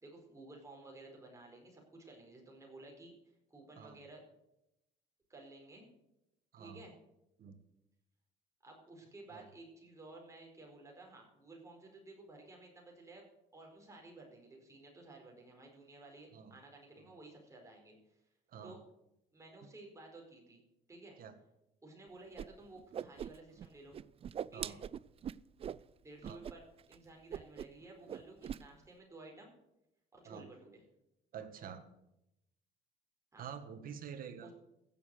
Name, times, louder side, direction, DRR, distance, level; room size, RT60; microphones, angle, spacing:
voice 1, 0.0-3.1 3.5-4.2 5.3-5.9 6.6-6.9 8.6-13.3 13.5-18.2 18.6-18.8 19.3-20.6 20.9-21.2 21.8-23.9 24.5-24.8 26.0-26.6 26.9-29.5 30.1-30.8 33.3-33.4 34.4-34.5, right 2 dB, 20° right, 0 dB, 4.6 m, -54 dB
Whoosh swoosh swish, 22.4-22.5 22.7-23.7 23.9-25.8 26.2-26.5 26.8-27.0 27.3-27.8 28.1-28.6, right 9 dB, 35° right, 0.4 m, -42 dB
voice 2, 31.3-31.8 33.4-34.5, right 7 dB, 60° right, 9 dB, 1.7 m, -47 dB
15.5 x 7.2 x 7.8 m, 0.86 s
cardioid pair, 110°, 17 cm